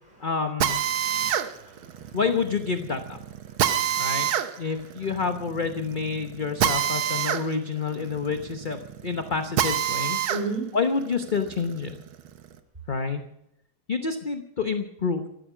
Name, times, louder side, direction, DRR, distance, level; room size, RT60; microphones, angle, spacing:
voice 1, 0.2-0.8 2.1-3.2 4.0-4.3 4.6-10.2 10.7-12.0 12.9-13.2 13.9-15.3, left 5 dB, 40° left, 6 dB, 0.7 m, -28 dB
Drill, 0.6-10.4 10.9-12.5, right 9 dB, 85° right, 1.8 m, -27 dB
voice 2, 1.0-2.2 3.6-3.7 3.9-4.1 4.5-4.7 10.3-10.6, right 3 dB, 25° right, 3 dB, 4.6 m, -35 dB
14.5 x 14.0 x 6.1 m, 0.78 s
omnidirectional pair, 2.1 m